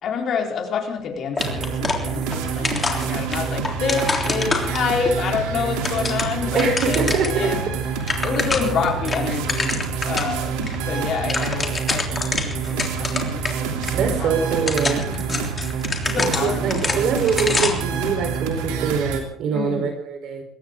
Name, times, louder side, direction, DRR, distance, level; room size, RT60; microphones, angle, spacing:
voice 1, 0.0-7.7 8.2-13.9 14.2-14.3 14.9-15.6 16.0-17.1 19.5-20.0, left 5 dB, 55° left, 2 dB, 4.1 m, -28 dB
sound 1, 1.4-2.4 2.6-5.1 5.6-7.4 7.7-7.8 8.0-8.8 9.1-10.3 10.7-10.8 11.1-13.5 13.8-13.9 14.5-17.9, left 3 dB, 25° left, 3.5 m, -26 dB
sound 2, 1.4-19.2, right 6 dB, 85° right, 3.1 m, -27 dB
voice 2, 6.5-7.5 13.9-15.1 16.2-20.4, right 5 dB, 65° right, 6 dB, 4.0 m, -24 dB
22.0 x 17.5 x 3.8 m, 0.72 s
supercardioid pair, 90°, 0 cm